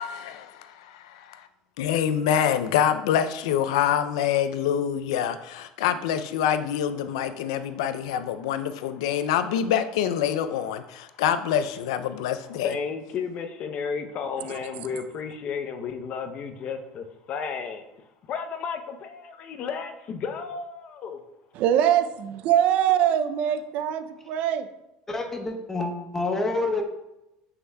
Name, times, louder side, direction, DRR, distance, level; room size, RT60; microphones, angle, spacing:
voice 1, 0.0-1.5 1.8-12.8, left 9 dB, 85° left, 0.4 m, -26 dB
voice 2, 12.6-17.8 18.2-21.2, left 6 dB, 45° left, 0.6 m, -33 dB
voice 3, 14.4-15.0 21.5-24.7, right 10 dB, 60° right, 0.4 m, -23 dB
voice 4, 25.1-26.8, left 2 dB, 15° left, 1.0 m, -27 dB
7.7 x 5.6 x 2.2 m
supercardioid pair, 115°, 3 cm